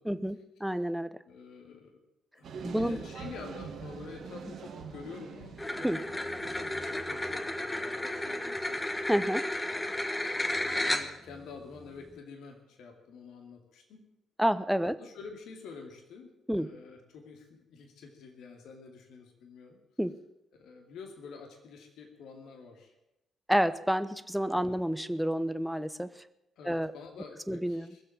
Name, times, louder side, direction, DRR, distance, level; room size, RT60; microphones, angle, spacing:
voice 1, 0.0-1.1 2.6-3.0 5.8-6.0 9.1-9.4 14.4-15.0 16.5-16.7 20.0-20.1 23.5-26.1 26.6-26.9 27.5-27.9, equal, ahead, 13 dB, 1.0 m, -29 dB
voice 2, 1.3-2.0 2.3-5.6 6.3-8.9 10.3-14.0 15.0-19.8 20.5-22.9 24.5-24.8 26.6-28.1, left 5 dB, 60° left, 4 dB, 2.5 m, -48 dB
sound 1, 2.4-7.2, right 6 dB, 55° right, 1.8 m, -44 dB
sound 2, 5.6-11.4, left 1 dB, 15° left, 1.6 m, -33 dB
21.0 x 7.9 x 8.7 m, 0.89 s
figure-of-eight pair, 40°, 0 cm